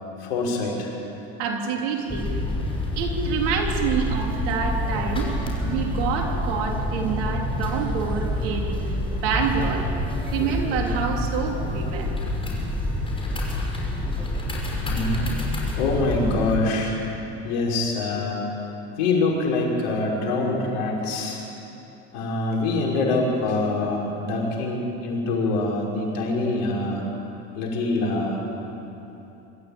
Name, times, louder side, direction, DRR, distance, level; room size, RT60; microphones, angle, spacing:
voice 1, 0.2-0.9 14.8-15.5 15.8-16.9 17.4-18.4 19.0-21.4 22.1-27.0 27.6-28.4, left 2 dB, 75° left, -1 dB, 5.6 m, -25 dB
voice 2, 1.4-2.3 3.0-5.3 5.6-8.8 9.2-9.9 10.3-12.1, right 6 dB, 75° right, 2 dB, 3.5 m, -27 dB
sound 1, 2.1-16.6, left 1 dB, 15° left, 5.8 m, -28 dB
sound 2, 4.8-10.5, equal, 10° right, 3.4 m, -36 dB
25.5 x 14.0 x 8.9 m, 3.0 s
supercardioid pair, 95°, 32 cm